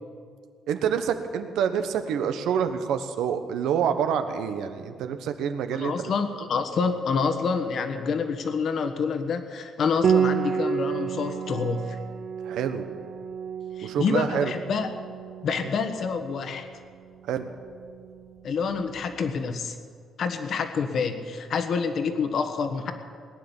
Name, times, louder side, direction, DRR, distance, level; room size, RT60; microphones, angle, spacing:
voice 1, 0.7-5.9 12.4-12.8 13.8-14.5 17.3-17.4, right 8 dB, 85° right, 8 dB, 1.1 m, -27 dB
voice 2, 5.7-12.0 13.8-14.9 15.4-16.7 18.4-19.7 20.2-22.9, left 5 dB, 55° left, 8 dB, 1.3 m, -27 dB
Piano, 10.0-19.4, right 7 dB, 55° right, 0.5 m, -31 dB
19.0 x 9.8 x 7.2 m, 2.1 s
cardioid pair, 115°, 0 cm